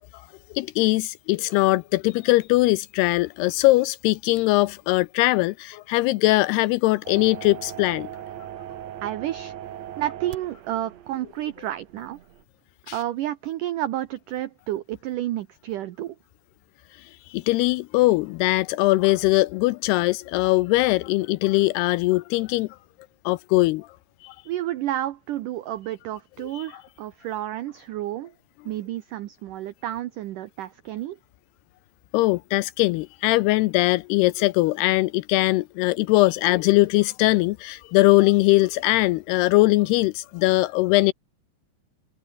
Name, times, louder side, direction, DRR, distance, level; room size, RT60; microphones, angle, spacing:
voice 1, 0.5-8.1 12.9-13.0 17.3-22.7 23.3-23.9 24.2-24.3 26.5-26.6 32.1-41.1, left 20 dB, 80° left, 2.4 m, -21 dB
sound 1, 7.0-12.4, right 11 dB, 70° right, 1.6 m, -39 dB
voice 2, 9.0-9.5 10.0-12.2 12.9-16.2 24.5-28.3 28.7-31.2, right 13 dB, 85° right, 1.8 m, -30 dB
omnidirectional pair, 5.0 m